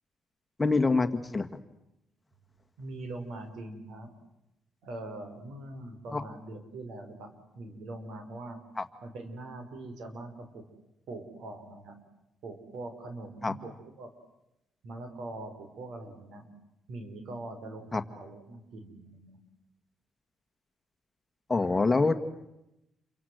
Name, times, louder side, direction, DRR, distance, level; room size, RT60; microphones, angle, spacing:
voice 1, 0.6-1.1 1.3-1.5 6.1-6.2 8.8-8.9 13.4-13.5 17.9-18.0 21.5-22.1, left 3 dB, 20° left, 7 dB, 1.9 m, -24 dB
voice 2, 2.8-4.1 4.8-7.3 7.5-8.6 9.0-10.6 11.1-12.0 12.4-14.1 14.8-16.4 16.9-19.4, right 2 dB, 75° right, 8 dB, 5.2 m, -42 dB
29.5 x 24.5 x 8.0 m, 0.88 s
cardioid pair, 90°, 0 cm